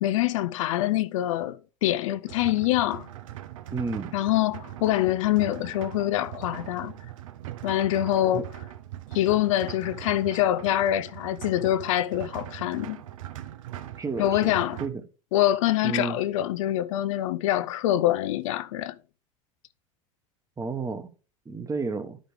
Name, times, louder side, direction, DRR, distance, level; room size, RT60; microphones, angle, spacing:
voice 1, 0.0-3.1 4.1-6.9 7.6-8.5 9.1-13.0 14.2-14.8 15.3-19.0, left 13 dB, 65° left, 0.5 m, -25 dB
sound 1, 2.3-14.9, right 13 dB, 70° right, 0.7 m, -41 dB
voice 2, 3.7-4.1 8.3-8.4 14.0-14.5 14.8-15.0 15.8-16.2 20.6-21.1 21.4-22.2, right 4 dB, 20° right, 1.1 m, -31 dB
11.5 x 5.2 x 3.2 m
hypercardioid pair, 80°, 17 cm